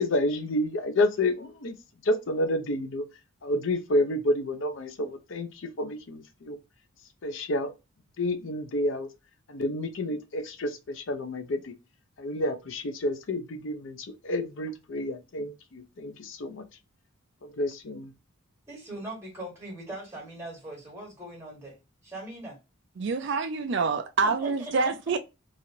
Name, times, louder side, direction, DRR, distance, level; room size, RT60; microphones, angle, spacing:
voice 1, 0.0-1.8 2.0-3.1 3.4-6.6 7.2-7.7 8.2-9.2 9.5-11.7 12.2-16.7 17.4-18.1, left 1 dB, 60° left, 0.5 m, -29 dB
voice 2, 18.7-22.6 24.2-24.5 24.8-24.9, right 1 dB, 15° right, 1.6 m, -40 dB
voice 3, 23.0-25.2, right 4 dB, 55° right, 0.4 m, -26 dB
3.1 x 2.5 x 2.7 m
head